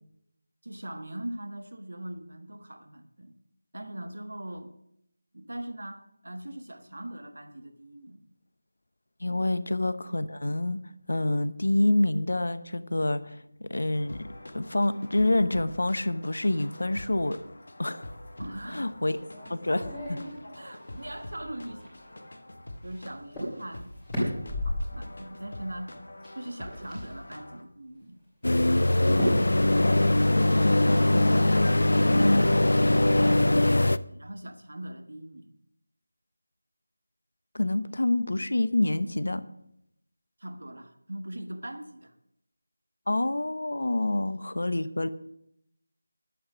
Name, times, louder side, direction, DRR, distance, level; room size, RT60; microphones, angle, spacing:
voice 1, 0.6-3.3 3.7-4.7 5.3-8.2 18.4-19.2 20.5-21.9 22.8-24.4 24.6-25.9 26.3-28.2 31.9-35.5 40.4-42.1, right 1 dB, 85° right, 8 dB, 1.5 m, -40 dB
voice 2, 9.2-10.8 11.1-14.3 14.5-17.4 17.8-18.1 18.7-19.2 19.5-20.2 30.3-31.6 32.1-32.5 37.5-39.4 43.1-45.1, left 1 dB, 70° left, 13 dB, 0.9 m, -27 dB
sound 1, 13.9-27.6, left 1 dB, 50° left, 1.4 m, -45 dB
sound 2, 19.2-22.1 22.9-23.0 23.3-23.5 23.8-25.0 26.2-27.1 27.9-28.0 29.1-29.5 31.1-32.0, equal, 5° left, 3.0 m, -34 dB
sound 3, 28.4-34.0, left 1 dB, 85° left, 0.5 m, -21 dB
11.0 x 8.7 x 6.3 m, 0.78 s
figure-of-eight pair, 180°, 0 cm